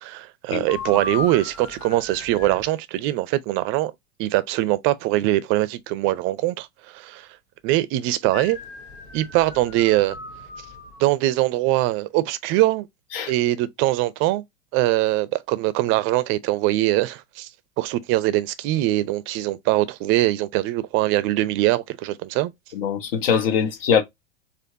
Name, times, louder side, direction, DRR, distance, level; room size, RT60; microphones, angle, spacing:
voice 1, 0.0-3.9 4.2-7.3 7.6-8.6 9.1-10.2 11.0-12.9 13.3-14.4 14.7-17.5 17.8-22.5, right 16 dB, 40° right, 0.5 m, -22 dB
sound 1, 0.7-2.7 8.3-11.0, left 3 dB, 85° left, 1.7 m, -36 dB
voice 2, 22.7-24.0, left 7 dB, 60° left, 1.1 m, -22 dB
4.3 x 2.5 x 2.6 m
figure-of-eight pair, 90°, 32 cm